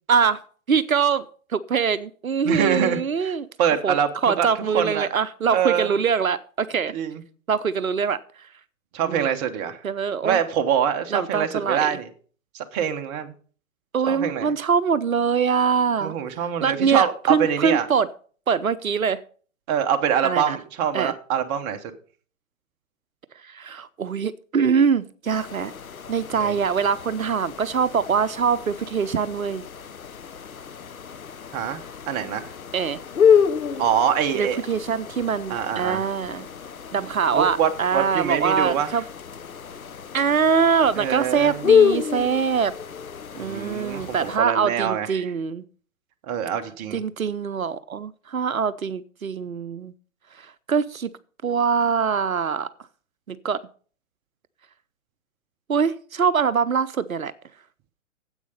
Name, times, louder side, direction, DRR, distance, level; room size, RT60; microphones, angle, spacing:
voice 1, 0.1-0.4 0.7-3.5 3.8-4.0 4.2-6.9 7.5-8.2 9.0-9.3 9.8-10.4 11.1-11.9 13.9-16.1 16.6-18.1 18.5-19.2 20.2-20.6 20.9-21.1 23.4-25.7 26.1-29.6 32.7-33.0 34.4-36.5 36.9-39.0 40.1-42.7 43.4-45.6 46.9-49.9 50.4-51.1 51.4-52.7 53.3-53.6 55.7-57.3, right 6 dB, 80° right, 14 dB, 0.7 m, -23 dB
voice 2, 2.4-4.1 4.4-4.5 4.7-5.1 5.5-5.9 6.9-7.2 8.9-9.8 10.2-12.1 12.5-13.3 14.1-14.5 16.0-17.9 19.7-21.8 26.3-26.6 31.5-32.5 33.8-34.6 35.5-36.0 37.3-39.0 41.0-41.7 43.4-45.3 46.2-47.0, right 8 dB, 30° right, 6 dB, 1.1 m, -24 dB
sound 1, 25.3-44.4, left 7 dB, 85° left, 0.7 m, -27 dB
10.0 x 8.0 x 5.1 m, 0.43 s
figure-of-eight pair, 115°, 41 cm